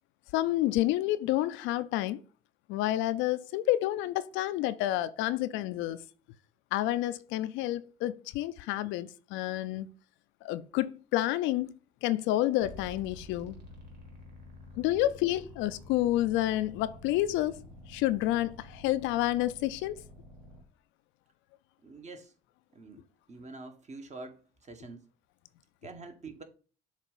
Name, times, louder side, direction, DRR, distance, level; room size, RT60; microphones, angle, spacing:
voice 1, 0.3-2.2 2.7-6.0 6.7-9.9 10.4-11.7 12.0-13.6 14.8-17.6 17.9-20.0, left 14 dB, 65° left, 0.4 m, -29 dB
sound 1, 12.6-20.6, left 2 dB, 90° right, 1.4 m, -49 dB
voice 2, 21.8-22.3 22.7-25.0 25.8-26.4, right 3 dB, 35° right, 1.2 m, -46 dB
7.2 x 2.4 x 5.4 m
hypercardioid pair, 55°, 21 cm